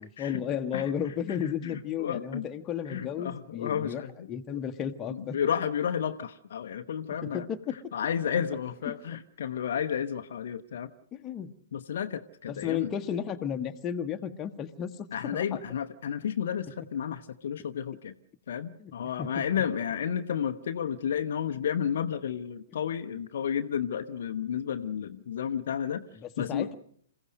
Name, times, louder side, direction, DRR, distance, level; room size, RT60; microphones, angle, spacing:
voice 1, 0.2-4.0 4.3-5.4 7.2-7.8 8.9-9.0 11.1-11.5 12.5-15.6 18.8-18.9 19.2-19.3 26.2-26.8, left 8 dB, 20° left, 6 dB, 1.2 m, -33 dB
voice 2, 1.3-2.5 2.9-4.6 5.1-7.5 7.9-10.9 11.7-12.9 15.1-18.1 18.5-26.0 26.4-26.7, left 8 dB, 55° left, 7 dB, 0.8 m, -32 dB
27.5 x 15.5 x 6.4 m, 0.62 s
figure-of-eight pair, 115°, 0 cm